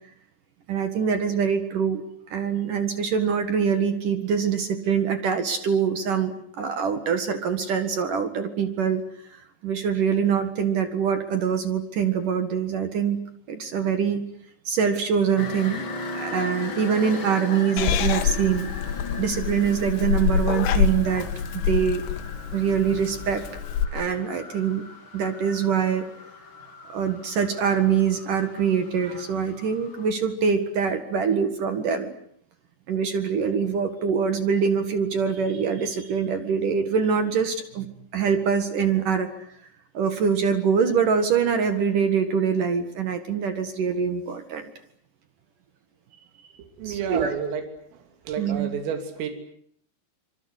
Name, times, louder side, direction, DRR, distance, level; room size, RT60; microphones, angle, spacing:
voice 1, 0.7-2.0 2.3-9.0 9.3-13.2 13.5-14.2 14.7-15.9 16.1-18.7 19.2-21.3 21.5-22.1 22.5-23.4 23.9-24.8 25.1-26.0 26.9-32.1 32.9-37.9 38.1-39.5 39.9-44.7 46.8-47.3 48.4-48.7, right 6 dB, 55° right, 8 dB, 2.6 m, -24 dB
sound 1, 15.4-30.1, left 3 dB, 30° left, 2.9 m, -39 dB
Purr / Meow, 17.8-23.9, left 8 dB, 90° left, 4.5 m, -26 dB
voice 2, 46.6-47.6 47.9-48.0 48.3-49.3, right 7 dB, 80° right, 6 dB, 5.6 m, -30 dB
26.5 x 25.0 x 8.2 m, 0.66 s
omnidirectional pair, 5.9 m